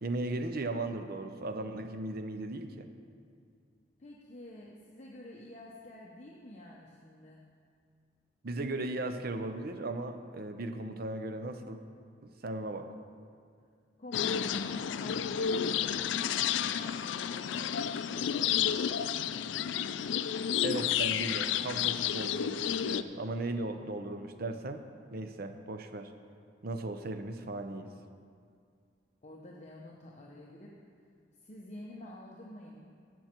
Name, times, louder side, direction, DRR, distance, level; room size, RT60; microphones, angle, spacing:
voice 1, 0.0-2.9 8.4-11.8 12.2-12.9 20.6-24.8 25.1-26.1 26.6-27.9, right 2 dB, 55° right, 8 dB, 0.7 m, -37 dB
voice 2, 4.0-7.4 14.0-19.6 29.2-30.7 31.4-32.8, left 1 dB, 40° left, -3 dB, 0.9 m, -49 dB
sound 1, 14.1-23.0, left 9 dB, 80° left, 0.4 m, -31 dB
17.0 x 6.2 x 4.4 m, 2.2 s
head